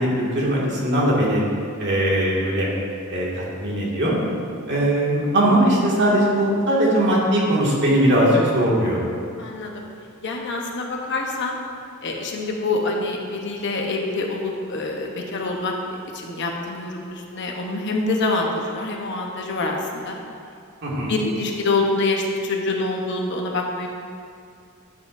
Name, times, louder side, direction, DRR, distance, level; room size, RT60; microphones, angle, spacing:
voice 1, 0.0-1.4 1.8-2.7 3.1-4.2 4.7-9.1 20.8-21.1, right 1 dB, 55° right, -5 dB, 2.1 m, -20 dB
voice 2, 9.4-9.8 10.2-11.6 12.0-15.7 16.1-20.2 21.1-23.9, left 2 dB, 55° left, 1 dB, 1.0 m, -26 dB
12.0 x 7.5 x 2.6 m, 2.4 s
head